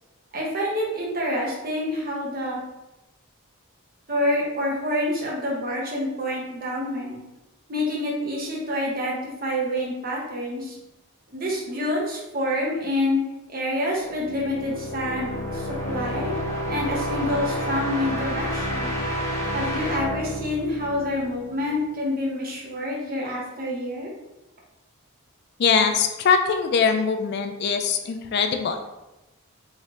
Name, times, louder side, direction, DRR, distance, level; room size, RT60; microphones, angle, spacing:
voice 1, 0.3-2.6 4.1-7.2 7.7-10.7 11.3-13.2 13.5-16.3 16.7-18.9 19.5-24.1, left 1 dB, 40° right, -3 dB, 1.0 m, -27 dB
sound 1, 14.0-21.8, equal, 10° left, 0.8 m, -30 dB
voice 2, 25.6-28.8, left 6 dB, 50° left, 6 dB, 0.3 m, -22 dB
3.2 x 3.1 x 3.7 m, 0.99 s
head